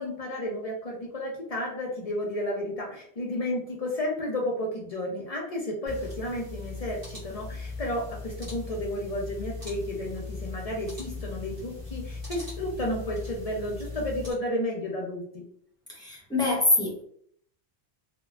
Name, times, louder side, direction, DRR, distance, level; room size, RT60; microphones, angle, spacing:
voice 1, 0.0-15.4, left 1 dB, 50° left, -2 dB, 0.5 m, -32 dB
sound 1, 5.9-14.3, left 3 dB, 40° right, 1.6 m, -39 dB
voice 2, 15.9-17.0, left 2 dB, 5° left, -3 dB, 0.6 m, -25 dB
3.3 x 2.1 x 2.3 m, 0.63 s
omnidirectional pair, 1.1 m